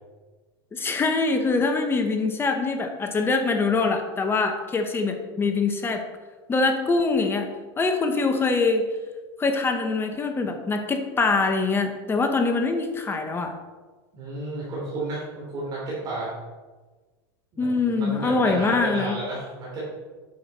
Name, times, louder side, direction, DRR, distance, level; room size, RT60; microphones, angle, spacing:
voice 1, 0.7-6.0 6.5-7.5 7.8-8.8 9.4-13.5 17.6-19.2, left 3 dB, 15° left, 5 dB, 0.9 m, -24 dB
voice 2, 14.1-16.3 17.5-19.8, right 2 dB, 35° right, -6 dB, 3.0 m, -32 dB
8.6 x 6.6 x 4.2 m, 1.3 s
supercardioid pair, 130°, 13 cm